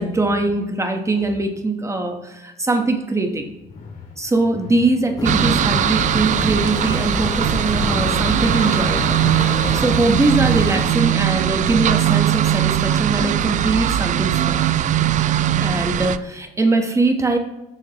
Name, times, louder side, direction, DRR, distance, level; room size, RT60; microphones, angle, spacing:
voice 1, 0.0-3.5 4.2-9.2 9.5-14.7 15.6-17.4, right 2 dB, 15° right, 5 dB, 1.1 m, -21 dB
sound 1, 3.4-11.0, left 3 dB, 50° left, 2.5 m, -33 dB
sound 2, 5.2-10.9, left 2 dB, 20° left, 1.2 m, -28 dB
sound 3, 5.2-16.2, right 11 dB, 45° right, 0.4 m, -20 dB
13.5 x 7.4 x 2.9 m, 1.0 s
cardioid pair, 110°, 17 cm